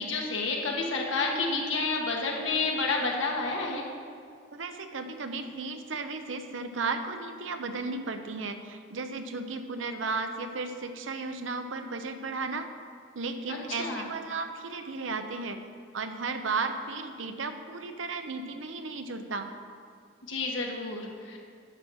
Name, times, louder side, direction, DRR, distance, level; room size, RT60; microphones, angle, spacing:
voice 1, 0.0-3.8 13.5-14.0 20.3-21.4, left 3 dB, 90° left, 0 dB, 1.5 m, -30 dB
voice 2, 4.5-12.7 13.1-15.6 15.9-19.5, right 4 dB, 85° right, 7 dB, 0.8 m, -34 dB
9.7 x 6.4 x 6.3 m, 2.1 s
head